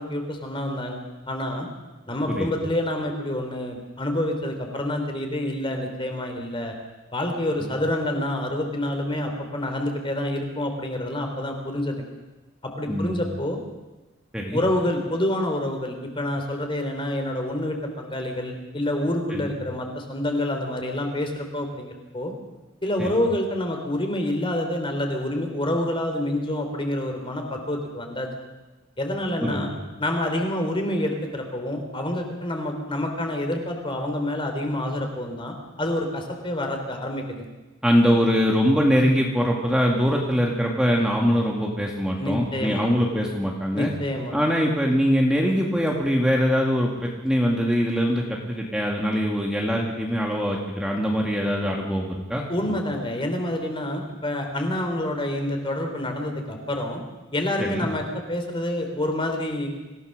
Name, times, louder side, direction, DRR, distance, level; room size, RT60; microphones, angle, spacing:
voice 1, 0.0-1.7 2.1-6.7 7.1-12.1 12.6-13.6 14.5-22.3 22.8-28.3 29.0-29.7 30.0-37.5 42.2-42.9 43.7-44.4 52.5-57.0 57.3-59.7, left 1 dB, 25° left, 4 dB, 3.3 m, -27 dB
voice 2, 12.9-13.2 14.3-14.6 19.3-19.5 23.0-23.1 29.4-29.7 37.8-43.9 44.3-52.8 57.6-57.9, equal, 5° right, -1 dB, 2.2 m, -23 dB
26.0 x 16.5 x 6.6 m, 1.1 s
head